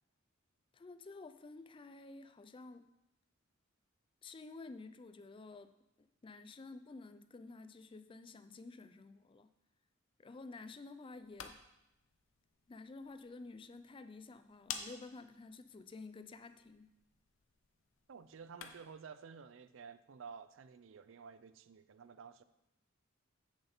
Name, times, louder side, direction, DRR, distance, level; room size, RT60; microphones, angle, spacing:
voice 1, 0.7-2.9 4.2-5.7 6.0-9.5 10.2-11.6 12.7-16.9, left 3 dB, 25° left, 10 dB, 0.3 m, -51 dB
sound 1, 11.1-19.0, left 7 dB, 70° left, 0.7 m, -52 dB
voice 2, 18.1-22.4, right 6 dB, 65° right, 13 dB, 0.4 m, -52 dB
7.9 x 6.5 x 4.3 m, 0.92 s
head